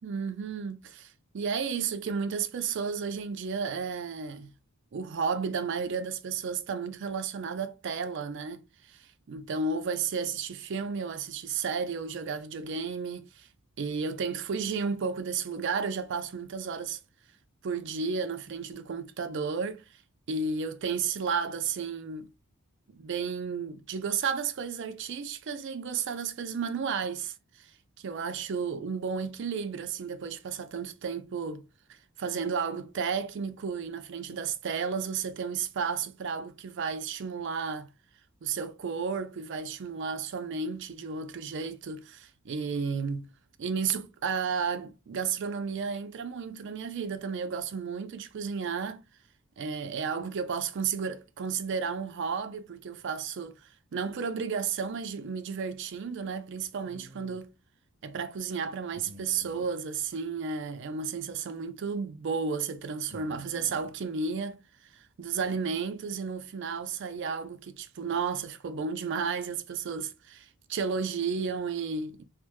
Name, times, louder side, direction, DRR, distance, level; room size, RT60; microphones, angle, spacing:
voice 1, 0.0-4.5 4.9-8.6 8.9-13.5 13.8-17.0 17.6-19.8 20.3-22.3 22.9-27.7 28.0-31.6 31.9-37.9 38.4-43.3 43.6-49.0 49.6-53.6 53.9-57.5 58.0-64.6 64.9-72.2, right 5 dB, 55° right, 0.4 m, -33 dB
sound 1, 56.8-57.4 58.9-59.8 60.9-61.0 61.3-61.4 63.1-64.0 65.2-65.5, left 1 dB, 30° right, 1.5 m, -50 dB
3.2 x 2.1 x 3.0 m
head